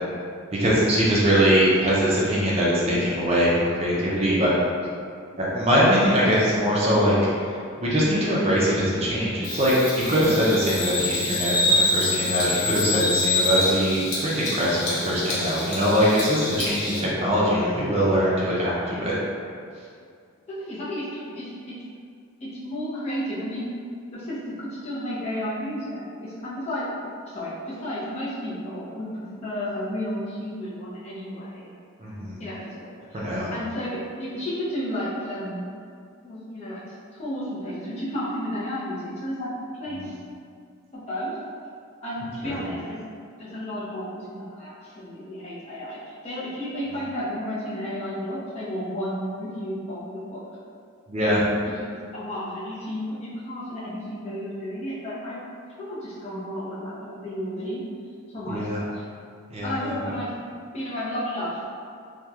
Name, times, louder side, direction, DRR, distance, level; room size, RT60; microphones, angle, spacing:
voice 1, 0.5-4.5 5.4-7.3 7.8-19.2 32.0-32.3 33.1-33.5 40.0-40.1 42.4-42.5 51.1-51.4 58.5-58.8 59.5-59.9, equal, 30° right, -7 dB, 0.4 m, -22 dB
Bird vocalization bird call bird song, 9.4-17.0, left 2 dB, 75° left, 0.8 m, -26 dB
voice 2, 20.5-21.7 22.4-23.7 24.1-26.8 27.3-31.7 32.4-33.2 33.5-35.8 36.2-36.8 37.1-39.5 39.8-40.2 40.9-41.4 42.0-43.0 43.4-50.4 51.2-51.4 51.8-55.4 55.8-57.8 58.3-59.0 59.6-60.3 60.7-61.6, equal, 30° left, -8 dB, 0.6 m, -32 dB
2.9 x 2.3 x 2.3 m, 2.3 s
head